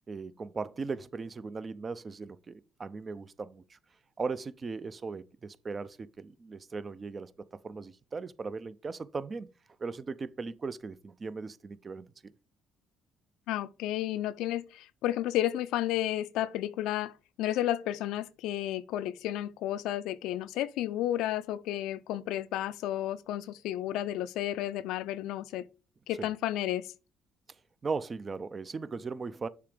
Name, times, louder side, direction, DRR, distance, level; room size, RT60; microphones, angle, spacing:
voice 1, 0.1-3.8 4.2-9.5 9.8-12.1 26.2-26.3 27.8-29.5, right 4 dB, 35° right, 0.5 m, -38 dB
voice 2, 13.5-17.1 17.4-25.6 26.1-26.9, left 13 dB, 80° left, 0.4 m, -32 dB
6.8 x 3.0 x 5.0 m
supercardioid pair, 80°, 0 cm